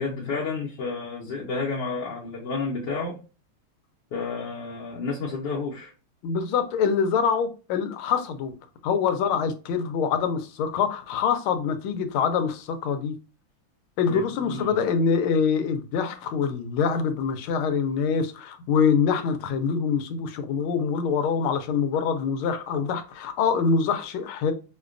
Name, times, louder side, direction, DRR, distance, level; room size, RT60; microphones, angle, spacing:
voice 1, 0.0-3.2 4.1-5.9 14.1-14.7, left 4 dB, 65° left, 1.2 m, -31 dB
voice 2, 6.2-8.5 8.8-13.1 14.0-24.5, left 6 dB, 85° left, 1.4 m, -25 dB
5.1 x 2.2 x 2.4 m
omnidirectional pair, 2.3 m